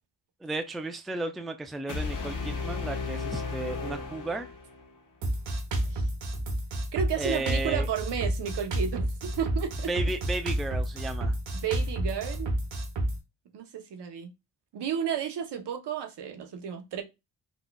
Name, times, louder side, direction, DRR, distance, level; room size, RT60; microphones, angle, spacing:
voice 1, 0.4-4.5 7.2-7.9 9.9-11.4, right 2 dB, ahead, 0.3 m, -34 dB
sound 1, 1.9-4.9, left 4 dB, 45° left, 1.0 m, -34 dB
Drum kit, 5.2-13.2, right 1 dB, 90° right, 1.1 m, -30 dB
voice 2, 6.9-9.9 11.5-12.5 13.5-14.3 14.7-17.0, right 8 dB, 70° right, 0.8 m, -32 dB
4.1 x 2.3 x 2.2 m
cardioid pair, 70°, 43 cm